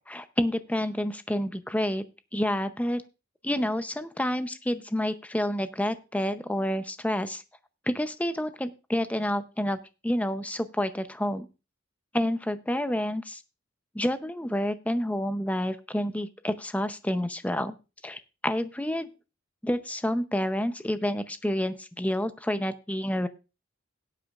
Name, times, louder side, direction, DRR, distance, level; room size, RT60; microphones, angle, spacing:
voice 1, 0.1-2.0 2.3-3.0 3.4-7.4 7.9-9.8 10.0-11.5 12.1-13.4 13.9-17.8 18.0-19.1 19.6-23.3, left 1 dB, 5° left, 11 dB, 0.6 m, -29 dB
18.0 x 8.4 x 2.4 m, 0.30 s
head